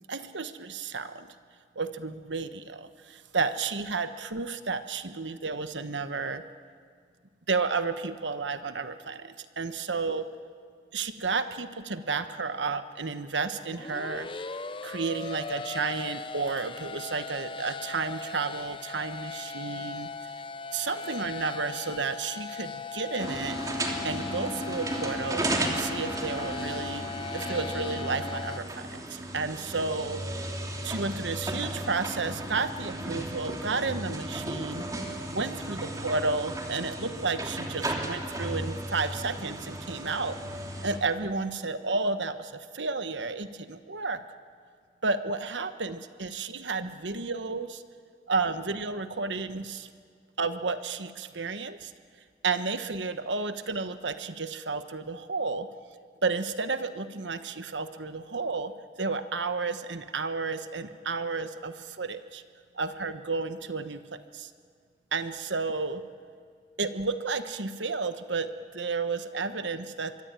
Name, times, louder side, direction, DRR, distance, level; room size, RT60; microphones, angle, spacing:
voice 1, 0.1-1.3 1.7-6.4 7.5-10.3 10.9-14.3 14.8-20.1 20.7-23.6 24.0-27.1 27.3-30.2 30.8-34.9 35.3-40.4 40.8-44.2 45.0-47.8 48.3-49.9 50.4-51.9 52.4-55.7 56.2-58.7 59.0-62.4 62.7-64.5 65.1-66.0 66.8-70.2, right 4 dB, 80° right, 10 dB, 1.3 m, -32 dB
sound 1, 13.6-28.6, left 5 dB, 30° left, 0.6 m, -38 dB
sound 2, 23.2-41.0, right 1 dB, 20° right, 2.8 m, -35 dB
25.0 x 23.0 x 9.0 m, 2.1 s
head